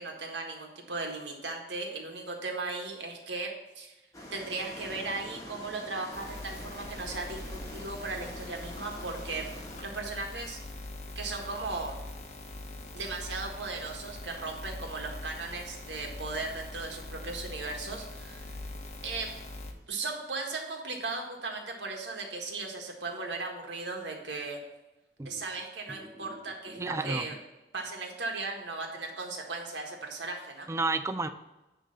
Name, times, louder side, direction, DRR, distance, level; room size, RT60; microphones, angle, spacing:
voice 1, 0.0-4.0 4.3-9.5 9.8-10.6 11.1-12.0 12.9-18.5 19.0-19.3 19.9-24.6 25.2-27.3 27.7-30.7, right 3 dB, 85° right, 1 dB, 1.6 m, -37 dB
sound 1, 4.1-9.8, equal, 20° left, 1.3 m, -46 dB
sound 2, 6.1-19.7, left 2 dB, 40° left, 0.9 m, -43 dB
voice 2, 26.7-27.3 30.7-31.3, right 3 dB, 15° right, 10 dB, 0.4 m, -31 dB
9.9 x 3.3 x 6.7 m, 1.0 s
head